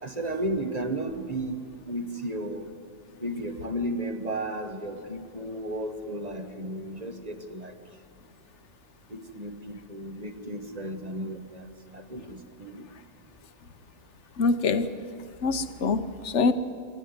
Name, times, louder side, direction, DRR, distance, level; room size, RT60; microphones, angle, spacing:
voice 1, 0.0-2.7 3.2-7.7 9.1-12.8, right 1 dB, 30° right, 6 dB, 1.2 m, -34 dB
voice 2, 14.4-14.9 15.4-16.5, left 4 dB, 65° left, 11 dB, 1.2 m, -24 dB
25.5 x 12.5 x 9.5 m, 2.4 s
omnidirectional pair, 1.3 m